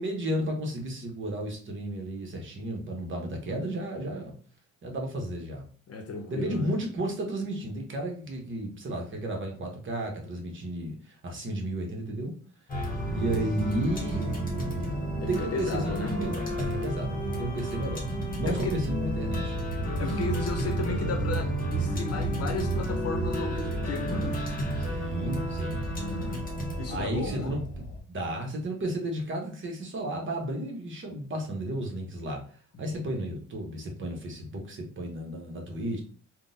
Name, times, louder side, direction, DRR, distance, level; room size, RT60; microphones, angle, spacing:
voice 1, 0.0-4.3 4.8-5.6 6.3-12.3 13.1-14.4 15.3-19.8 24.8-25.9 26.9-27.6 28.1-32.4 32.8-36.0, right 1 dB, 40° right, 1.0 m, -33 dB
voice 2, 5.9-6.8 13.0-13.2 15.2-16.2 17.3-17.6 18.4-18.8 20.0-24.4 25.7-26.5 26.8-27.6 32.7-32.9, left 4 dB, 55° left, 0.8 m, -35 dB
sound 1, 12.7-28.0, right 1 dB, 30° left, 1.1 m, -31 dB
3.6 x 2.2 x 2.6 m
cardioid pair, 90°, 30 cm